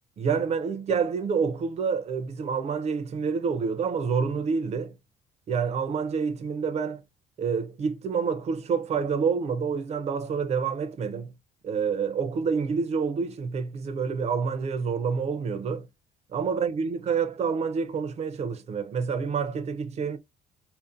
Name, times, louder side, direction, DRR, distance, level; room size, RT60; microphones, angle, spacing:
voice 1, 0.2-5.0 5.5-7.0 7.4-11.3 11.6-15.9 16.3-20.2, right 5 dB, 40° right, 0.5 m, -28 dB
2.5 x 2.1 x 2.4 m
cardioid pair, 110°, 17 cm